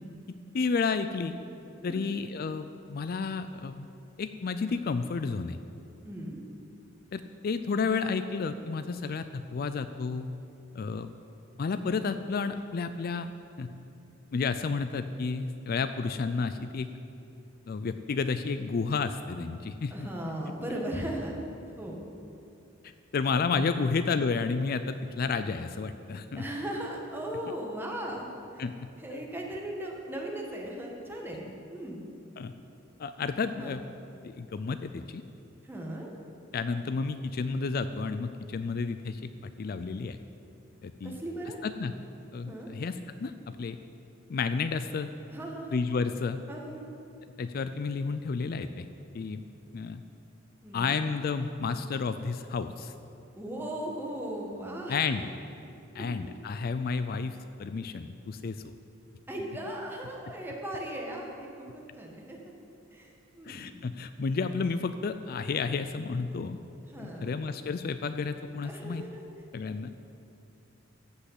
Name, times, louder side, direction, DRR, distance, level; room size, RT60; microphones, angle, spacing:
voice 1, 0.5-1.4 1.8-3.9 4.2-5.6 7.1-10.3 10.7-11.1 11.6-13.3 13.6-13.7 14.3-16.9 17.7-20.1 23.1-26.4 28.6-28.7 29.1-29.2 32.4-32.5 33.0-33.8 34.2-35.2 36.5-39.3 39.6-40.2 40.8-41.1 41.6-41.9 42.3-42.9 43.2-43.3 43.6-43.8 44.3-45.1 45.7-46.4 47.4-48.9 49.1-49.4 49.7-50.0 50.7-52.9 54.9-55.2 55.9-58.6 63.5-66.6 67.0-69.0 69.5-69.9, left 4 dB, 50° left, 10 dB, 0.4 m, -31 dB
voice 2, 6.0-6.4 19.9-21.4 21.8-22.1 26.3-28.3 28.5-28.6 29.0-32.0 33.5-33.8 35.6-36.1 41.0-41.6 42.4-42.7 45.3-45.8 46.5-46.9 50.6-50.9 53.4-55.2 55.9-56.1 59.3-62.5 62.9-63.8 66.9-67.4 68.6-69.2, right 1 dB, 10° right, -1 dB, 1.6 m, -38 dB
14.5 x 5.5 x 8.2 m, 2.7 s
head